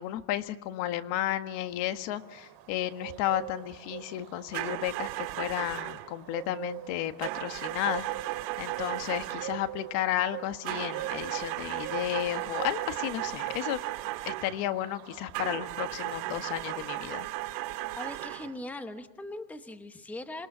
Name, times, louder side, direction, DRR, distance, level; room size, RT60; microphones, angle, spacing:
voice 1, 0.0-8.1 8.6-13.8 14.3-17.3, left 12 dB, 65° left, 9 dB, 1.7 m, -33 dB
sound 1, 1.4-16.0, right 14 dB, 55° right, 3.2 m, -44 dB
sound 2, 4.5-6.1 7.2-9.7 10.6-14.6 15.3-18.6, right 17 dB, 80° right, 1.9 m, -35 dB
voice 2, 17.6-20.5, left 1 dB, 5° left, 8 dB, 1.0 m, -41 dB
27.0 x 22.0 x 7.4 m, 0.97 s
cardioid pair, 175°, 48 cm